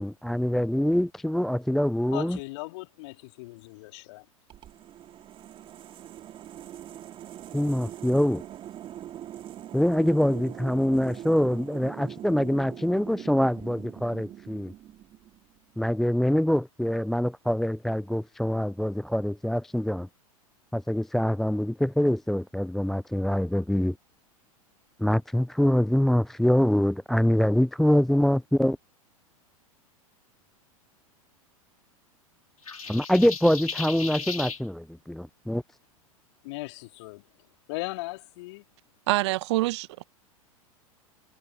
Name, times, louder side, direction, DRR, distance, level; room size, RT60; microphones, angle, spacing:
voice 1, 0.0-2.4 7.5-8.4 9.7-14.7 15.8-20.1 20.7-23.9 25.0-28.8 32.9-35.6, left 1 dB, ahead, 0.4 m, -24 dB
voice 2, 2.1-4.3 36.4-38.7, left 23 dB, 50° left, 3.7 m, -38 dB
sound 1, 4.5-15.6, right 11 dB, 30° right, 3.4 m, -42 dB
sound 2, 32.7-34.6, left 5 dB, 75° left, 4.6 m, -35 dB
voice 3, 39.1-40.0, right 19 dB, 50° right, 1.1 m, -26 dB
figure-of-eight pair, 90°, 19 cm